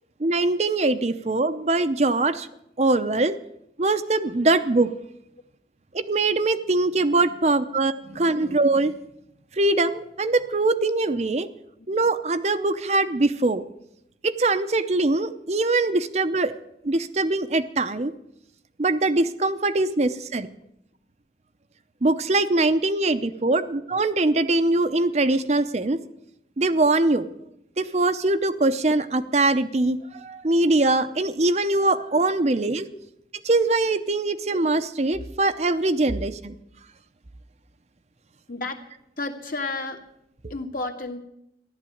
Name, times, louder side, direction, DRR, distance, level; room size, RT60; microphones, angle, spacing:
voice 1, 0.2-2.5 2.8-3.4 3.8-4.9 5.9-8.9 9.5-11.5 11.9-13.6 14.2-16.5 16.8-18.1 18.8-20.5 22.0-26.0 26.6-27.3 27.8-32.9 33.4-36.6, right 2 dB, 40° right, 10 dB, 0.7 m, -22 dB
voice 2, 8.1-8.5 20.1-20.2 32.4-32.5 32.9-33.0 38.5-38.8 39.2-40.0 40.5-41.2, left 3 dB, 50° left, 3 dB, 1.9 m, -32 dB
14.5 x 11.5 x 8.5 m, 0.79 s
head